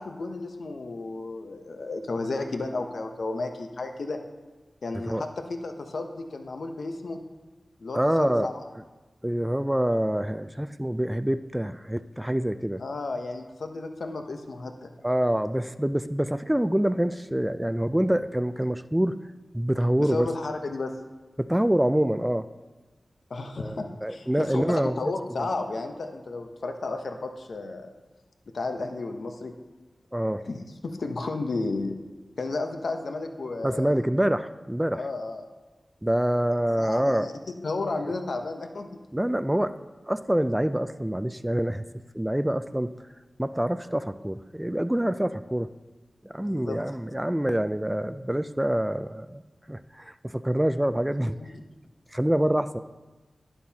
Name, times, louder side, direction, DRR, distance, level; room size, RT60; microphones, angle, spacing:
voice 1, 0.0-4.2 4.8-7.2 7.8-8.6 12.8-14.9 20.0-20.9 23.3-27.9 28.5-29.5 30.4-32.0 32.4-33.9 34.9-35.5 36.8-37.3 37.6-38.9 46.5-46.8 51.2-51.6, left 3 dB, 80° left, 5 dB, 0.8 m, -33 dB
voice 2, 7.9-8.5 9.2-12.8 15.0-19.2 19.5-20.3 21.4-22.5 23.6-25.0 25.4-25.5 30.1-30.4 33.6-35.1 36.0-37.3 39.1-39.8 40.1-41.8 42.1-42.9 43.4-45.7 46.2-49.4 49.7-51.4 52.1-52.8, right 1 dB, 10° right, 11 dB, 0.3 m, -26 dB
11.0 x 9.3 x 2.9 m, 1.2 s
cardioid pair, 50°, 0 cm